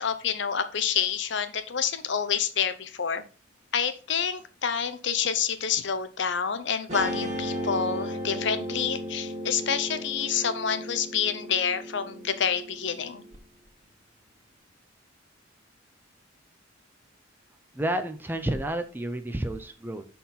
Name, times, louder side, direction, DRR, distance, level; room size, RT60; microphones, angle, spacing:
voice 1, 0.0-3.2 3.7-13.2, left 7 dB, 60° left, 11 dB, 0.7 m, -28 dB
Guitar, 6.9-13.4, equal, 35° right, 1.8 m, -35 dB
voice 2, 17.7-20.0, right 1 dB, 10° right, 8 dB, 0.5 m, -30 dB
5.9 x 4.3 x 5.4 m, 0.37 s
head